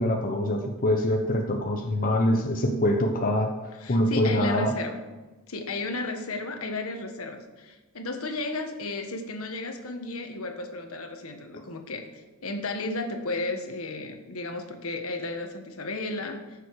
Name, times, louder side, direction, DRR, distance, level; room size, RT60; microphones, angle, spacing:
voice 1, 0.0-3.5 3.9-4.7, left 1 dB, 40° left, 2 dB, 0.9 m, -24 dB
voice 2, 3.7-5.0 5.5-16.4, left 2 dB, 70° left, 5 dB, 1.4 m, -34 dB
14.5 x 6.8 x 4.8 m, 1.2 s
head